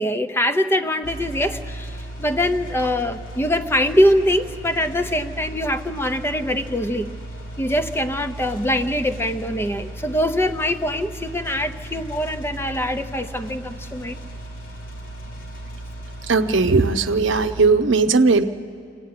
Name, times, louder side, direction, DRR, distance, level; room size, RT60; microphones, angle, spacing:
voice 1, 0.0-7.1 7.6-14.2, equal, 10° left, 7 dB, 0.7 m, -23 dB
sound 1, 1.0-17.7, right 1 dB, 90° left, 3.8 m, -36 dB
voice 2, 16.3-18.4, right 4 dB, 75° right, 8 dB, 0.8 m, -17 dB
25.5 x 16.0 x 9.6 m, 2.6 s
head